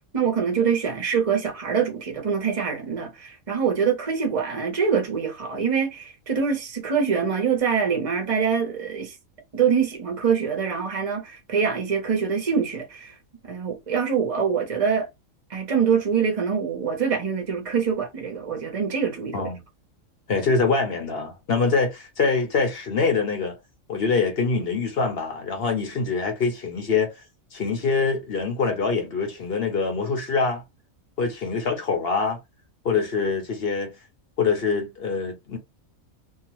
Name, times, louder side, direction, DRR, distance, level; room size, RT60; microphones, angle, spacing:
voice 1, 0.1-9.1 9.5-13.1 13.5-15.1 15.5-19.5, right 6 dB, 30° right, 0.8 m, -24 dB
voice 2, 20.3-23.5 23.9-27.1 27.5-30.6 31.2-32.4 32.8-33.9 34.4-35.6, left 4 dB, 50° left, 0.9 m, -24 dB
2.7 x 2.3 x 3.0 m
omnidirectional pair, 1.5 m